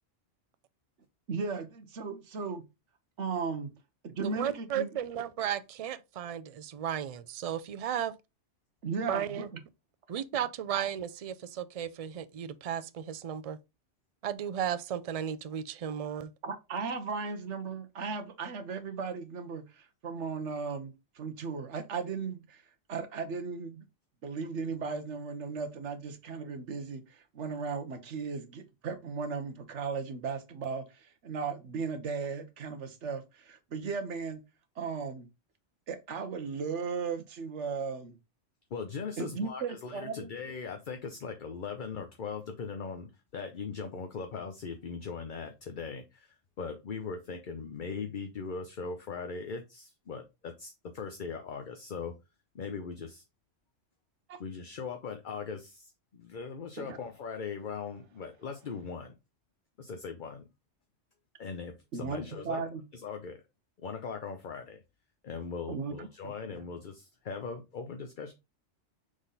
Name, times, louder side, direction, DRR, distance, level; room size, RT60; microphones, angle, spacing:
voice 1, 1.3-2.6 3.2-3.7 4.0-4.9 8.8-9.6 16.4-22.6 22.9-23.9 24.2-34.4 34.8-35.3 35.9-38.2 39.2-40.3 54.3-54.4 56.8-57.0 61.9-62.2 62.4-62.8 65.7-66.3, right 5 dB, 75° right, 1.3 m, -36 dB
voice 2, 4.2-8.1 9.1-9.5 10.1-13.6 14.2-16.3, right 9 dB, 55° right, 0.4 m, -34 dB
voice 3, 38.7-52.1 52.5-53.2 54.4-59.1 59.8-60.5 61.4-62.6 62.9-63.4 63.8-64.8 65.2-68.3, left 5 dB, 45° left, 0.8 m, -40 dB
6.3 x 3.8 x 3.9 m
omnidirectional pair, 1.2 m